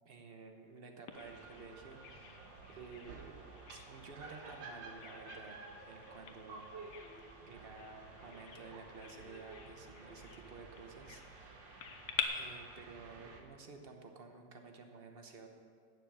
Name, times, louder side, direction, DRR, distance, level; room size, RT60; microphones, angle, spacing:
voice 1, 0.0-3.3 3.7-5.6 5.8-6.7 7.4-11.9 12.3-15.5, right 4 dB, 40° right, 4 dB, 1.0 m, -53 dB
Bird vocalization bird call bird song, 1.1-12.2, left 9 dB, 70° left, 1.5 m, -48 dB
sound 1, 1.1-13.4, right 3 dB, 80° right, 1.9 m, -53 dB
11.5 x 6.8 x 8.6 m, 2.1 s
omnidirectional pair, 2.0 m